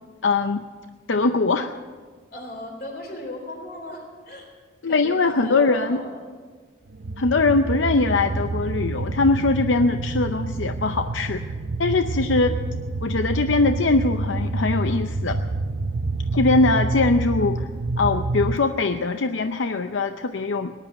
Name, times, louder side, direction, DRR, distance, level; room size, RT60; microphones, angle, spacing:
voice 1, 0.2-0.7 1.1-1.7 4.8-6.0 7.2-11.5 11.8-12.6 13.0-15.4 16.3-17.7 18.0-20.7, left 3 dB, 80° left, 8 dB, 0.6 m, -21 dB
voice 2, 2.3-4.5 4.9-6.2, left 1 dB, 50° left, 2 dB, 3.8 m, -37 dB
sound 1, 6.9-18.6, right 3 dB, 65° right, 0.7 m, -28 dB
19.0 x 11.0 x 6.9 m, 1.5 s
head